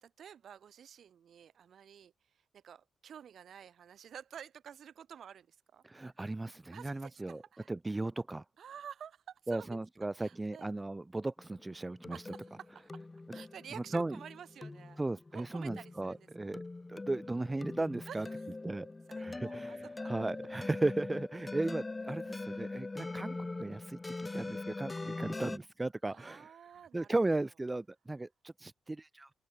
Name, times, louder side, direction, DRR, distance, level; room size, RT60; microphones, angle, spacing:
voice 1, 0.0-2.1 2.5-5.8 6.7-7.7 8.6-9.8 10.2-10.7 12.1-13.0 13.3-15.0 15.3-16.3 18.1-18.4 19.1-20.1 22.5-22.7 26.1-27.2, right 8 dB, 70° right, 5.0 m, -51 dB
voice 2, 5.8-7.4 7.7-8.4 9.5-12.2 13.9-14.2 15.0-16.6 16.9-18.3 18.6-18.9 19.2-26.6 26.9-29.3, right 2 dB, 20° right, 0.5 m, -36 dB
sound 1, 11.4-25.6, left 3 dB, 25° left, 0.6 m, -42 dB
open air
cardioid pair, 70°, 0 cm